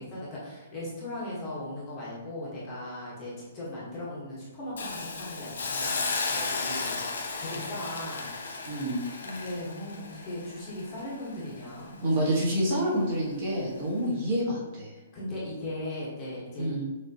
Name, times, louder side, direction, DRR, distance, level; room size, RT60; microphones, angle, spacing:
voice 1, 0.0-7.0 7.4-8.3 9.2-12.0 15.1-16.7, left 1 dB, 20° left, -7 dB, 1.2 m, -38 dB
Hiss, 4.8-11.8 12.2-12.4, left 4 dB, 75° left, 0.9 m, -34 dB
voice 2, 8.6-9.0 12.0-14.9 16.6-16.8, right 1 dB, 30° right, -5 dB, 1.3 m, -27 dB
6.4 x 2.9 x 2.8 m, 1.2 s
hypercardioid pair, 175°, 0 cm